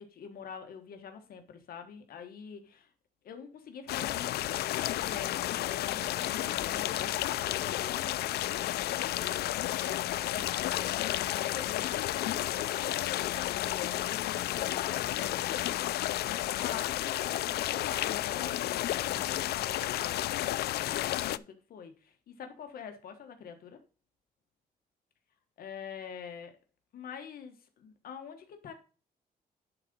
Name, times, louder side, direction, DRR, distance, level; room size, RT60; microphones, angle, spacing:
voice 1, 0.0-2.9 3.2-4.5 4.9-10.6 11.2-23.8 25.6-26.6 26.9-28.7, left 7 dB, 70° left, 6 dB, 1.3 m, -45 dB
sound 1, 3.9-21.4, left 14 dB, 90° left, 0.4 m, -32 dB
10.5 x 3.9 x 5.2 m, 0.34 s
cardioid pair, 155°, 16 cm